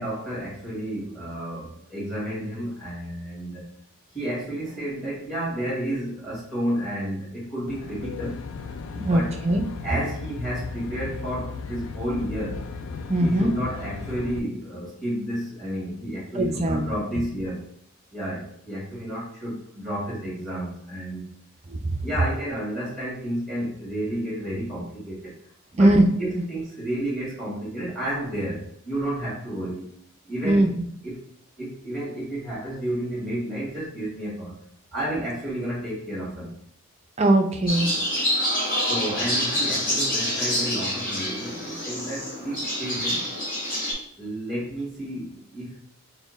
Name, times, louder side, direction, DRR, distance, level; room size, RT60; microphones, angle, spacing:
voice 1, 0.0-3.6 4.1-8.4 8.9-9.3 9.8-12.6 13.2-17.6 18.1-21.2 22.0-25.3 25.7-29.9 30.3-30.7 31.0-31.1 31.6-34.6 34.9-36.5 38.6-43.2 44.2-45.8, right 1 dB, ahead, -6 dB, 1.6 m, -31 dB
Aircraft, 7.7-14.4, left 4 dB, 70° left, 0.3 m, -36 dB
voice 2, 9.1-9.7 13.1-13.5 16.3-17.2 21.7-21.9 25.8-26.0 30.4-30.7 37.2-37.9, right 1 dB, 30° right, 5 dB, 0.4 m, -20 dB
sound 1, 37.7-43.9, equal, 45° left, 1.4 m, -27 dB
4.2 x 2.1 x 4.0 m, 0.69 s
head